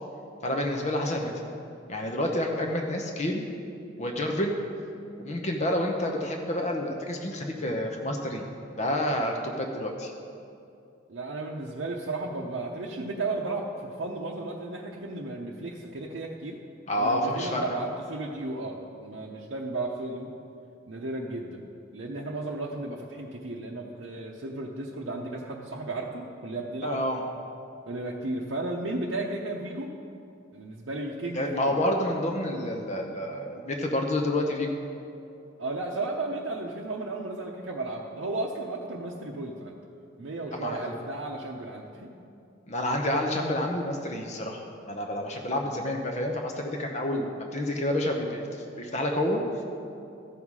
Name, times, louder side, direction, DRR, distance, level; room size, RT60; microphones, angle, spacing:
voice 1, 0.4-1.3 1.9-3.4 4.0-4.6 5.2-8.4 8.8-10.1 16.9-17.7 26.8-27.2 31.3-34.7 40.5-40.8 42.7-48.4 48.8-49.4, left 1 dB, 35° left, 2 dB, 0.7 m, -29 dB
voice 2, 11.1-16.6 16.9-20.3 20.9-21.7 21.9-27.0 27.9-30.0 30.5-31.8 35.6-39.8 40.2-42.1, right 2 dB, 70° right, -3 dB, 0.7 m, -34 dB
14.0 x 5.7 x 4.8 m, 2.6 s
head